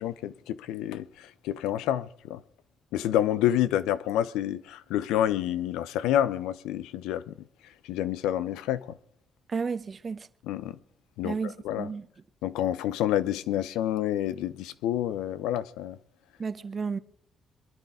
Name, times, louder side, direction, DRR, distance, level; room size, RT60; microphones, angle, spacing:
voice 1, 0.0-2.4 2.9-7.3 7.9-9.0 10.5-10.8 11.2-11.3 11.6-11.9 12.4-16.0, left 11 dB, 85° left, 0.6 m, -28 dB
voice 2, 9.5-10.3 11.2-12.1 16.4-17.0, right 5 dB, 50° right, 1.1 m, -32 dB
22.5 x 11.0 x 4.9 m
supercardioid pair, 50°, 0 cm